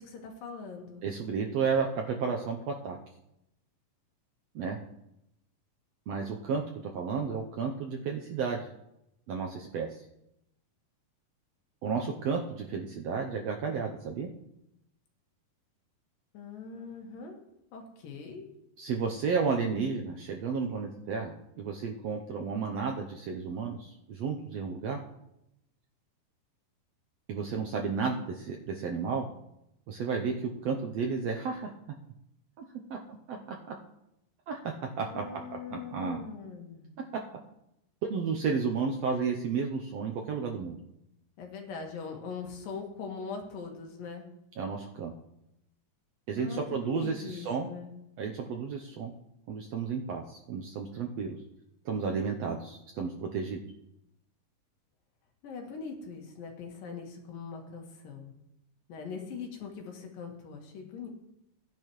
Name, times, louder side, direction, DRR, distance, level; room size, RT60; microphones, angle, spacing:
voice 1, 0.0-1.0 16.3-17.4 17.7-18.5 35.0-36.9 41.4-44.3 46.4-47.9 55.4-58.3 58.9-61.1, left 5 dB, 90° left, 2 dB, 3.4 m, -41 dB
voice 2, 1.0-3.0 4.5-4.8 6.1-8.7 9.3-10.0 11.8-14.3 18.8-25.0 27.3-29.3 29.9-31.7 32.9-33.7 34.5-35.4 35.7-36.2 38.0-40.8 44.6-45.1 46.3-47.7 48.2-49.1 49.5-51.4 51.8-53.6, right 5 dB, 75° right, 1 dB, 1.5 m, -32 dB
17.5 x 10.5 x 3.2 m, 0.83 s
omnidirectional pair, 3.9 m